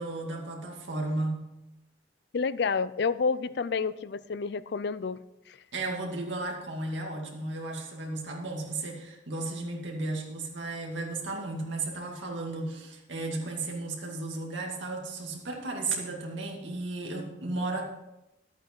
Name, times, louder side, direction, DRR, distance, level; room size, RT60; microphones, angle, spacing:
voice 1, 0.0-1.6 5.7-17.8, right 2 dB, 85° right, 0 dB, 2.3 m, -34 dB
voice 2, 2.3-5.6, left 5 dB, 60° left, 16 dB, 0.4 m, -29 dB
12.0 x 8.7 x 4.6 m, 0.93 s
head